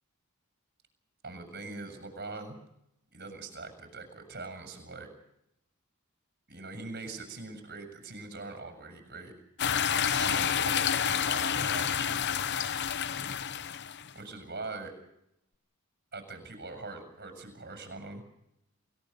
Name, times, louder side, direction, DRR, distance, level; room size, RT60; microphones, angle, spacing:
voice 1, 1.2-2.6 3.1-5.1 6.5-9.3 9.9-12.2 14.1-14.9 16.1-18.2, right 3 dB, 45° right, 5 dB, 6.8 m, -42 dB
sound 1, 9.6-14.1, left 8 dB, 50° left, 0.8 m, -29 dB
28.5 x 16.5 x 6.7 m, 0.81 s
head